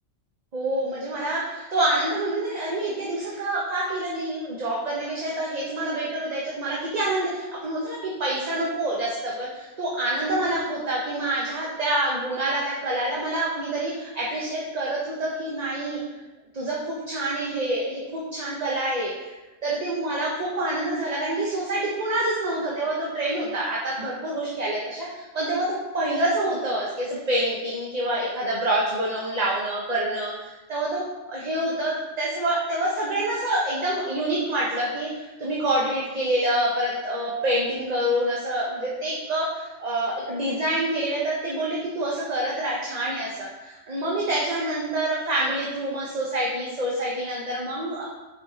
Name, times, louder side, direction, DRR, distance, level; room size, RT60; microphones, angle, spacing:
voice 1, 0.5-16.0 16.5-19.3 19.6-31.0 31.3-35.1 35.4-48.0, right 1 dB, 40° right, -5 dB, 0.9 m, -27 dB
5.1 x 4.9 x 3.9 m, 1.1 s
omnidirectional pair, 1.2 m